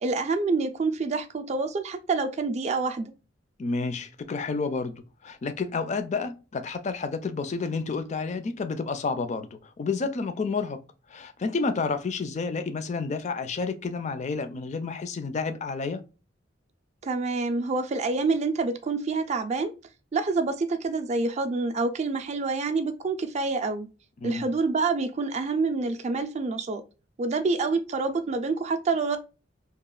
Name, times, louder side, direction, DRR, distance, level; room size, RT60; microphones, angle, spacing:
voice 1, 0.0-3.1 17.0-19.7 20.1-23.9 24.2-26.8 27.2-29.2, right 3 dB, 35° right, 0.4 m, -27 dB
voice 2, 3.6-4.9 5.2-10.8 11.1-16.0 24.2-24.4, left 4 dB, 40° left, 0.4 m, -30 dB
2.9 x 2.3 x 2.3 m
head